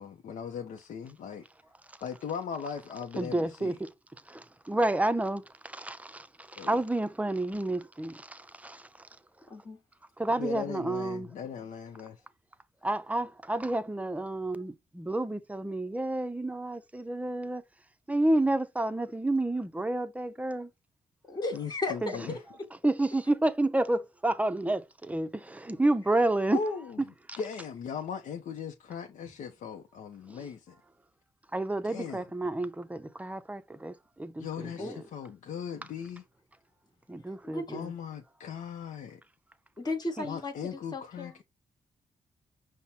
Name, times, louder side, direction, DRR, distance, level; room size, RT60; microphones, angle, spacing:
voice 1, 0.0-1.4 2.0-3.8 6.6-6.8 10.4-12.2 21.5-22.4 26.5-30.8 31.8-32.3 34.4-36.2 37.7-39.2 40.2-41.4, left 6 dB, 75° left, 0.6 m, -38 dB
voice 2, 3.2-3.9 4.3-8.8 10.2-11.3 12.8-17.6 18.1-20.7 22.0-22.1 22.8-26.6 27.3-27.4 31.5-35.0 37.1-37.9 40.2-40.3, right 2 dB, 10° right, 0.5 m, -30 dB
voice 3, 9.5-9.8 21.3-22.4 34.8-35.0 37.5-37.8 39.8-41.4, left 2 dB, 30° left, 1.1 m, -35 dB
5.4 x 2.1 x 4.3 m
cardioid pair, 70°, 13 cm